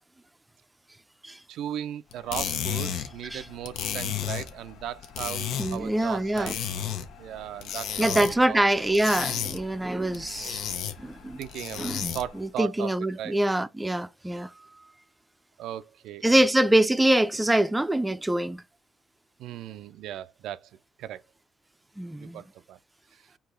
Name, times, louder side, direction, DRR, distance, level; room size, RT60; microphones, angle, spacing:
voice 1, 1.5-6.7 7.2-8.9 10.1-10.5 11.4-12.9 13.2-13.4 15.6-16.5 19.4-20.7 21.0-21.2 22.2-22.8 23.1-23.2, right 11 dB, 80° right, 0.3 m, -37 dB
sound 1, 2.1-12.4, left 9 dB, 85° left, 0.7 m, -34 dB
voice 2, 5.6-6.5 8.0-10.6 11.0-11.4 11.8-14.5 16.2-18.6 22.0-22.4, right 1 dB, 10° right, 0.4 m, -24 dB
4.7 x 2.9 x 3.8 m
cardioid pair, 100°, 0 cm